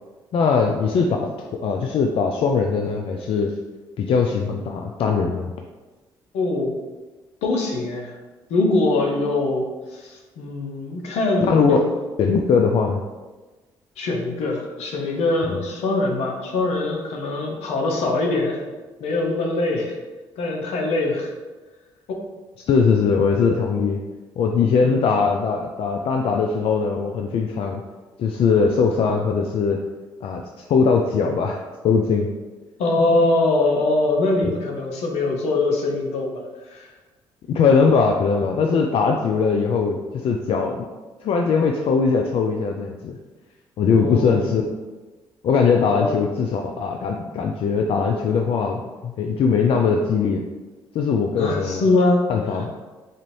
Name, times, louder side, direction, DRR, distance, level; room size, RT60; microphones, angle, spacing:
voice 1, 0.3-3.5 4.0-5.5 11.5-11.8 12.2-13.0 22.7-24.0 24.4-27.8 28.2-29.8 30.2-30.4 30.7-31.6 31.8-32.3 37.5-40.9 41.2-43.2 43.8-44.6 45.4-50.4 50.9-51.8 52.3-52.7, left 5 dB, 55° left, 2 dB, 0.4 m, -20 dB
voice 2, 6.3-6.8 7.4-8.2 8.5-11.9 14.0-18.6 19.0-20.0 20.4-21.3 24.8-25.1 32.8-36.9 43.9-44.5 45.9-46.1 51.4-52.2, left 2 dB, 75° left, 1 dB, 0.7 m, -23 dB
4.1 x 2.6 x 3.1 m, 1.2 s
supercardioid pair, 60°, 11 cm